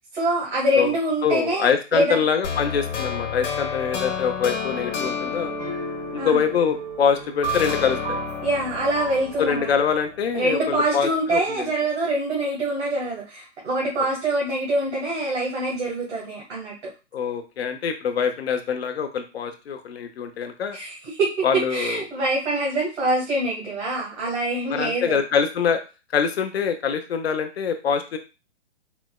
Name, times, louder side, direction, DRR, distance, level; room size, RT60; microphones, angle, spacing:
voice 1, 0.1-2.2 6.1-6.5 8.4-9.7 10.3-16.7 20.7-25.2, right 1 dB, 85° right, -5 dB, 1.5 m, -25 dB
voice 2, 1.2-5.5 6.1-8.2 9.4-11.7 17.1-20.8 21.4-22.0 24.7-25.8 26.1-28.2, left 6 dB, 60° left, 7 dB, 0.6 m, -24 dB
sound 1, 2.4-7.0 7.4-10.5, left 6 dB, 80° left, 1.0 m, -31 dB
sound 2, 4.6-9.6, right 4 dB, 35° right, 0.6 m, -34 dB
4.0 x 2.0 x 2.2 m, 0.29 s
hypercardioid pair, 175°, 35 cm